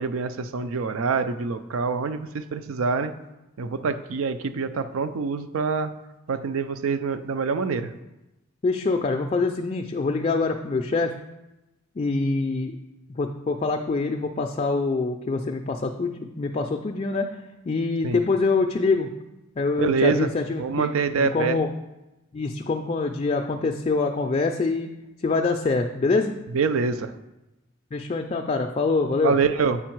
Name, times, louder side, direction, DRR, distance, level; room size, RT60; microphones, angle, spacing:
voice 1, 0.0-3.1 3.6-5.9 6.3-7.9 18.0-18.2 19.8-20.3 20.6-21.6 26.5-27.1 29.2-29.8, right 5 dB, 75° right, 11 dB, 0.4 m, -25 dB
voice 2, 8.6-11.1 12.0-12.8 13.2-17.3 17.6-19.1 19.6-20.9 21.1-21.7 22.3-24.9 25.2-26.3 27.9-29.3, left 3 dB, 30° left, 3 dB, 0.3 m, -25 dB
8.4 x 4.6 x 4.5 m, 0.99 s
head